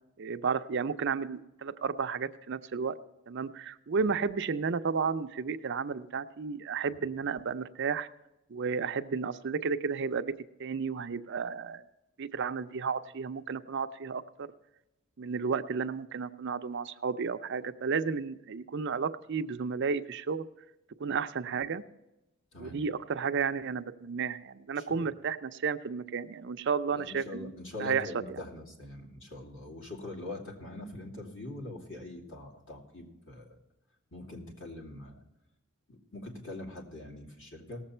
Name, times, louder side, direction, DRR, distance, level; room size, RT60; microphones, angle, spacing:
voice 1, 0.2-3.0 3.3-8.1 8.5-10.3 10.6-11.8 12.2-14.5 15.2-20.4 21.0-21.8 22.6-28.4, right 5 dB, 55° right, 10 dB, 0.5 m, -32 dB
voice 2, 26.9-33.5 34.1-35.2 35.9-37.8, left 1 dB, 60° left, -1 dB, 2.5 m, -43 dB
18.5 x 7.4 x 4.3 m, 0.93 s
head